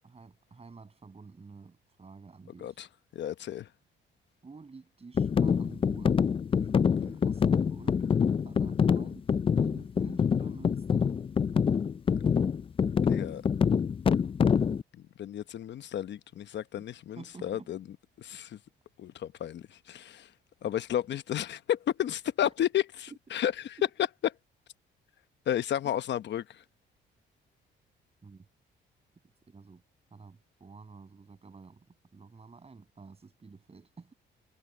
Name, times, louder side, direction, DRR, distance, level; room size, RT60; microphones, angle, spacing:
voice 1, 0.1-2.8 4.4-6.3 6.6-6.7 7.0-8.1 8.4-9.3 9.6-11.2 16.7-16.8 17.2-17.7 20.6-20.7 22.4-22.5 23.1-23.2 28.2-28.5 29.5-29.8 30.1-31.9 32.1-34.1, right 4 dB, 30° right, 7.3 m, -50 dB
voice 2, 3.1-3.7 13.1-13.4 15.2-17.8 18.2-18.6 19.0-20.3 20.6-23.5 25.5-26.6, left 11 dB, 65° left, 0.9 m, -32 dB
sound 1, 5.2-14.8, left 6 dB, 25° left, 0.4 m, -26 dB
cardioid pair, 90°, 20 cm